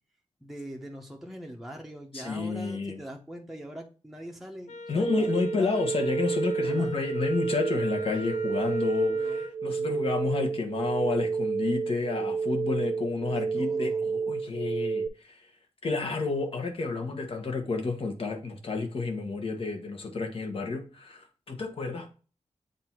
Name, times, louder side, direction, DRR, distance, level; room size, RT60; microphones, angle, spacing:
voice 1, 0.4-5.8 6.6-6.9 8.8-8.9 9.1-9.4 13.3-14.1, right 1 dB, ahead, 0.9 m, -42 dB
voice 2, 2.1-3.0 4.9-15.4 15.8-22.1, left 4 dB, 50° left, 1.3 m, -30 dB
Wind instrument woodwind instrument, 4.7-9.6, left 1 dB, 80° left, 0.6 m, -42 dB
sound 1, 5.1-15.1, right 5 dB, 50° right, 0.5 m, -30 dB
7.9 x 2.7 x 4.5 m
wide cardioid pair, 165°, 12 cm